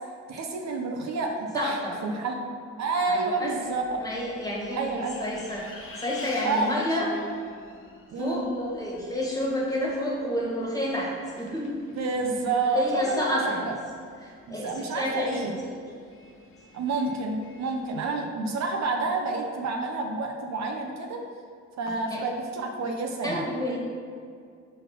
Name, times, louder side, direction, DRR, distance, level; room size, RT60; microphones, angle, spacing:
voice 1, 0.3-2.5 2.8-3.8 4.8-5.2 6.4-6.9 8.1-8.4 11.9-13.2 14.5-15.5 16.7-21.2 21.8-23.5, right 3 dB, 65° right, 2 dB, 0.8 m, -29 dB
voice 2, 1.5-2.0 3.1-3.5 4.0-7.1 8.2-11.8 12.6-13.6 14.2-15.8 21.9-22.2 23.2-23.8, left 1 dB, 10° left, -4 dB, 1.7 m, -30 dB
Bus, 3.6-18.0, left 3 dB, 45° left, 0.9 m, -49 dB
5.3 x 4.2 x 5.7 m, 2.2 s
cardioid pair, 90°, 30 cm